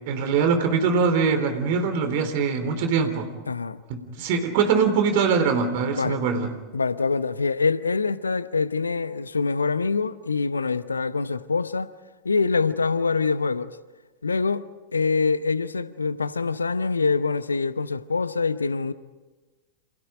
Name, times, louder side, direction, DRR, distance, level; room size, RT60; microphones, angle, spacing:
voice 1, 0.1-3.3 3.9-6.5, right 5 dB, 50° right, 3.7 m, -22 dB
voice 2, 3.5-3.8 5.9-6.2 6.7-11.9 12.2-13.8 14.2-14.7 14.9-18.9, left 4 dB, 75° left, 0.9 m, -25 dB
29.5 x 27.5 x 5.1 m
figure-of-eight pair, 90°, 0 cm